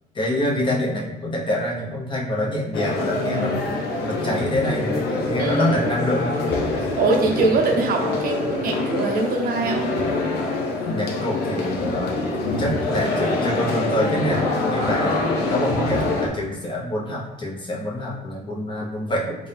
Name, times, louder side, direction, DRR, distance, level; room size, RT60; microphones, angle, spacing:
voice 1, 0.1-6.3 10.8-12.3 12.6-15.1 15.5-19.3, left 1 dB, 30° left, -3 dB, 1.0 m, -26 dB
sound 1, 2.7-16.3, left 2 dB, 70° left, 0.8 m, -25 dB
voice 2, 5.4-5.8 7.0-9.9, right 3 dB, 60° right, 1 dB, 0.8 m, -22 dB
3.6 x 2.8 x 3.4 m, 1.0 s
cardioid pair, 110°, 17 cm